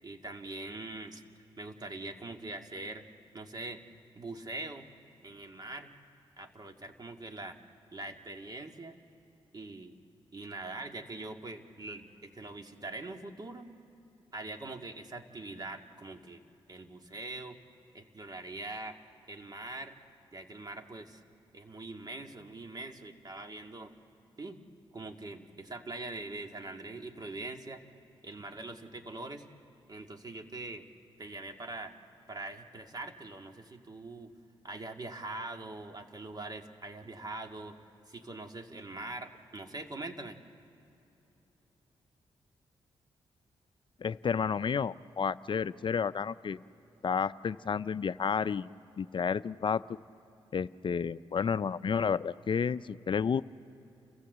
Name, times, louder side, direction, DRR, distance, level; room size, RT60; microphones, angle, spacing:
voice 1, 0.0-1.2 1.6-3.0 3.3-3.8 4.2-4.9 5.2-5.9 6.4-7.6 7.9-9.0 9.5-10.0 10.3-13.7 14.3-16.4 16.7-17.6 17.9-19.0 19.3-20.0 20.3-21.2 21.5-23.9 24.4-24.6 24.9-27.8 28.2-29.4 29.9-30.8 31.2-31.9 32.3-34.3 34.6-37.8 38.1-40.4, right 2 dB, 35° right, 4 dB, 2.2 m, -43 dB
voice 2, 44.0-46.6 47.0-48.7 49.0-49.8 50.5-53.4, left 6 dB, 50° left, 14 dB, 0.5 m, -31 dB
29.5 x 15.0 x 8.1 m, 3.0 s
supercardioid pair, 45°, 11 cm